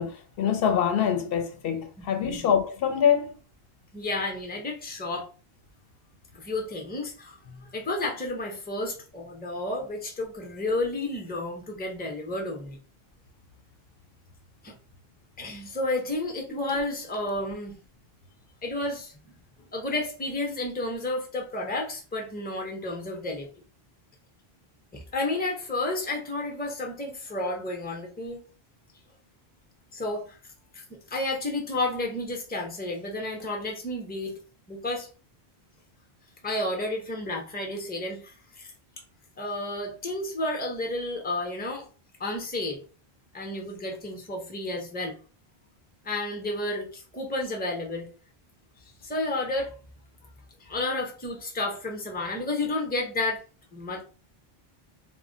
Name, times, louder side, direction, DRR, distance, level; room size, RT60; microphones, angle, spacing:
voice 1, 0.0-3.4 7.5-7.6, left 8 dB, 70° left, 0.7 m, -25 dB
voice 2, 2.0-2.4 3.9-5.3 6.3-12.8 14.6-14.8 15.4-17.8 18.6-19.1 19.7-23.5 24.9-28.4 29.9-30.4 30.7-34.4 34.7-35.1 36.4-38.7 39.4-41.9 42.2-42.8 43.3-45.2 46.0-48.1 49.0-49.8 50.6-53.4 53.7-54.0, left 2 dB, 10° left, 0.5 m, -31 dB
2.1 x 2.1 x 3.7 m
omnidirectional pair, 1.0 m